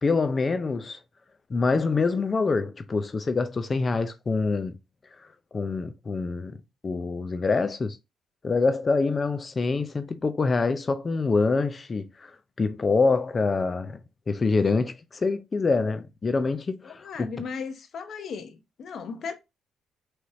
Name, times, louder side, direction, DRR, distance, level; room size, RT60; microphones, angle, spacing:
voice 1, 0.0-1.0 1.5-4.8 5.5-6.6 6.8-8.0 8.4-14.0 14.3-17.3, left 4 dB, 35° left, 0.5 m, -25 dB
voice 2, 16.8-19.3, left 5 dB, 60° left, 0.8 m, -36 dB
4.9 x 3.1 x 2.6 m
cardioid pair, 90°, 0 cm